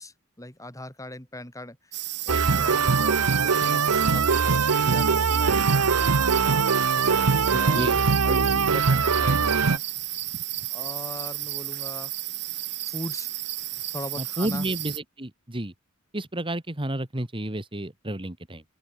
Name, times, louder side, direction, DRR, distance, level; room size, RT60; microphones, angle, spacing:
voice 1, 0.0-2.0 2.3-5.8 7.0-7.2 7.6-9.8 10.7-12.1 12.9-13.3 13.9-14.7, left 1 dB, 15° left, 7.3 m, -40 dB
sound 1, 1.9-15.0, right 15 dB, 55° right, 2.0 m, -33 dB
sound 2, 2.3-9.8, right 5 dB, 80° right, 0.9 m, -22 dB
voice 2, 7.5-8.0 14.2-15.7 16.1-18.6, right 1 dB, 25° right, 2.0 m, -31 dB
open air
head